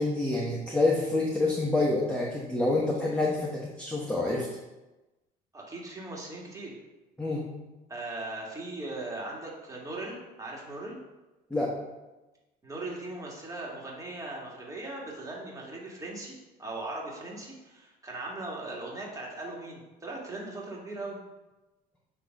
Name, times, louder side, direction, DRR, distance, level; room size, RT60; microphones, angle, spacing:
voice 1, 0.0-4.5 7.2-7.4 11.5-11.7, left 2 dB, 5° left, -3 dB, 1.1 m, -27 dB
voice 2, 5.5-6.8 7.9-11.0 12.6-21.2, right 2 dB, 20° right, -3 dB, 2.0 m, -39 dB
8.6 x 3.1 x 5.3 m, 1.1 s
cardioid pair, 110°, 17 cm